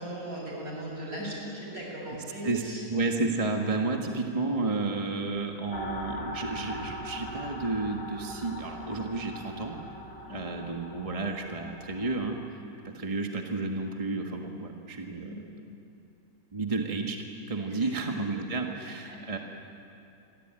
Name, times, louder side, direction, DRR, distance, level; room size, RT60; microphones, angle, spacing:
voice 1, 0.0-2.8 10.3-10.5 15.1-15.4 17.7-18.0 18.8-19.2, right 1 dB, 65° right, -3 dB, 7.9 m, -38 dB
voice 2, 2.9-9.8 10.3-12.6 12.9-15.3 16.5-19.4, right 3 dB, 25° right, 2 dB, 1.6 m, -31 dB
sound 1, 5.7-12.5, left 1 dB, 60° left, 2.9 m, -41 dB
28.5 x 23.0 x 9.0 m, 2.8 s
omnidirectional pair, 1.6 m